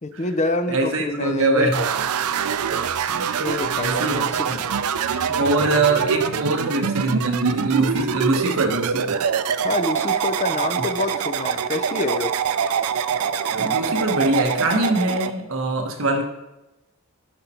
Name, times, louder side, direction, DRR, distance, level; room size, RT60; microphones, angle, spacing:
voice 1, 0.0-1.8 2.3-2.5 3.4-4.5 4.7-4.8 5.4-5.5 9.6-12.4, left 2 dB, 30° left, 9 dB, 0.6 m, -27 dB
voice 2, 0.7-1.8 3.1-3.4 3.8-4.8 5.4-9.2 10.8-10.9 13.5-16.2, right 2 dB, 65° right, 3 dB, 1.3 m, -23 dB
sound 1, 1.7-15.3, right 7 dB, 80° right, 0.5 m, -24 dB
10.5 x 5.5 x 4.3 m, 1.0 s
head